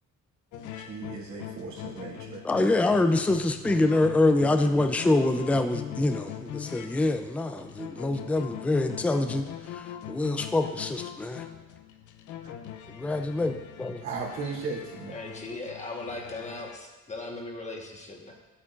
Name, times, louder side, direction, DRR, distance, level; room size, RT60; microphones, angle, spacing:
sound 1, 0.5-16.8, left 10 dB, 85° left, 0.6 m, -41 dB
voice 1, 0.7-2.4 12.4-12.5 14.0-15.2, right 4 dB, 65° right, -6 dB, 2.7 m, -36 dB
voice 2, 2.4-9.4 9.7-11.4 12.9-14.0, left 2 dB, 5° left, 7 dB, 0.4 m, -25 dB
voice 3, 15.1-18.3, left 2 dB, 25° left, 0 dB, 1.3 m, -38 dB
11.5 x 8.4 x 2.5 m, 1.2 s
cardioid pair, 140°, 30 cm